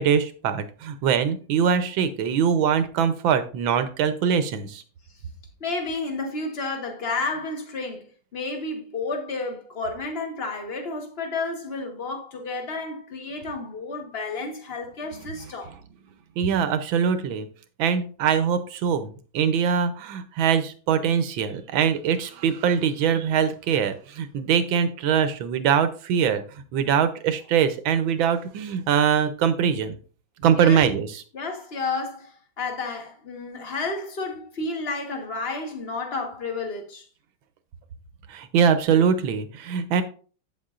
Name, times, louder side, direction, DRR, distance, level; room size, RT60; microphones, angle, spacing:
voice 1, 0.0-4.8 16.4-17.5 17.8-26.4 26.7-29.9 30.4-31.2 38.3-40.0, right 7 dB, 85° right, 1.6 m, -22 dB
voice 2, 5.6-15.7 30.5-30.9 31.3-37.1, left 3 dB, 35° left, 1.4 m, -31 dB
8.6 x 7.5 x 2.5 m
omnidirectional pair, 2.1 m